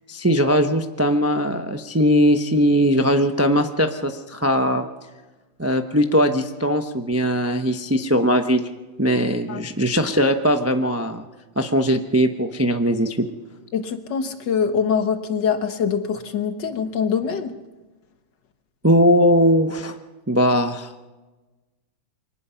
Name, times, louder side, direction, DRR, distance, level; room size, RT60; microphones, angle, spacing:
voice 1, 0.1-4.9 5.6-8.7 9.0-11.2 11.6-13.3 18.8-20.0 20.3-20.9, equal, 25° right, 6 dB, 0.3 m, -20 dB
voice 2, 13.7-17.6, left 6 dB, 60° left, 7 dB, 2.0 m, -24 dB
24.0 x 19.0 x 5.8 m, 1.2 s
omnidirectional pair, 2.2 m